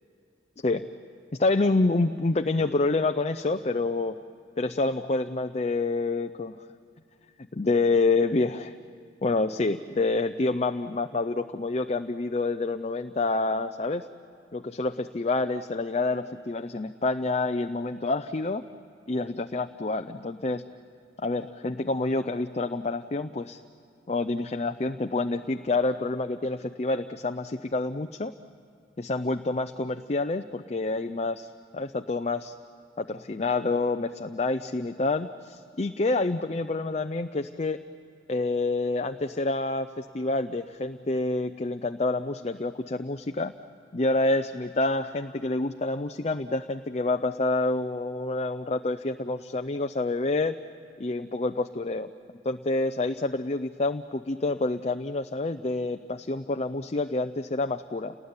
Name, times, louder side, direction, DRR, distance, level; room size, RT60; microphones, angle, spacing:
voice 1, 1.4-4.2 4.6-6.6 7.5-8.7 9.2-14.0 14.5-18.6 19.1-20.6 21.2-23.6 24.1-28.3 29.0-32.5 33.0-37.8 38.3-43.5 43.9-50.6 51.0-52.1 52.4-58.1, left 2 dB, 35° left, 7 dB, 0.6 m, -28 dB
29.5 x 19.5 x 9.7 m, 2.5 s
head